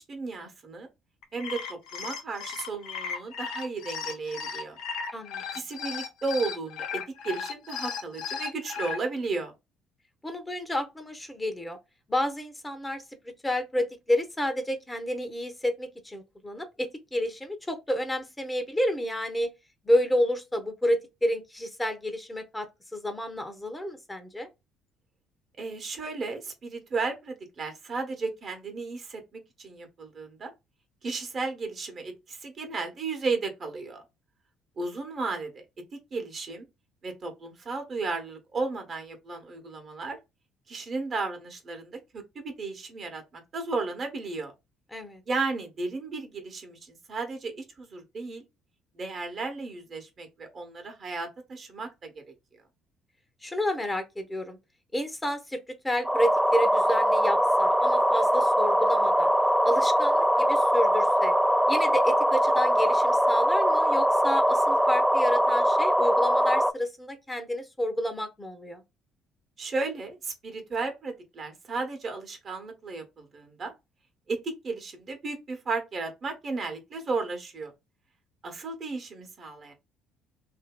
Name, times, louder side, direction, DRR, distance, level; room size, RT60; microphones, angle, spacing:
voice 1, 0.1-0.9 1.3-4.8 5.5-6.9 7.2-9.5 25.6-30.5 31.0-34.0 34.8-35.6 36.1-36.7 37.0-40.2 40.7-44.5 45.3-48.4 49.0-52.2 69.6-73.7 74.3-77.7 78.4-79.7, right 3 dB, 45° right, 1.0 m, -34 dB
sound 1, 1.2-9.0, left 6 dB, 75° left, 0.6 m, -35 dB
voice 2, 5.1-5.4 10.2-11.8 12.1-19.5 19.8-22.7 22.9-24.5 44.9-45.2 53.4-54.6 54.9-55.6 55.8-59.3 59.6-61.3 61.7-68.8, equal, 15° left, 0.8 m, -30 dB
sound 2, 56.1-66.7, equal, 5° right, 0.3 m, -22 dB
2.7 x 2.6 x 2.2 m
hypercardioid pair, 60°, 0 cm